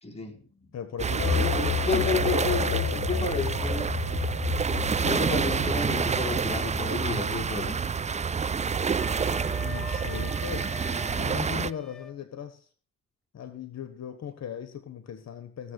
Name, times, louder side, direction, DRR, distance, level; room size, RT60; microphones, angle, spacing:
voice 1, 0.0-0.4 1.4-3.9 5.0-7.8, left 4 dB, 20° left, 3.6 m, -31 dB
voice 2, 0.7-3.6 9.6-12.7 13.3-15.7, left 8 dB, 60° left, 1.4 m, -39 dB
sound 1, 1.0-11.7, right 6 dB, 25° right, 0.5 m, -28 dB
sound 2, 1.2-7.7, left 10 dB, 75° left, 0.7 m, -32 dB
Wind instrument woodwind instrument, 9.0-12.2, left 6 dB, ahead, 2.5 m, -42 dB
15.5 x 7.3 x 6.5 m
cardioid pair, 95°, 30 cm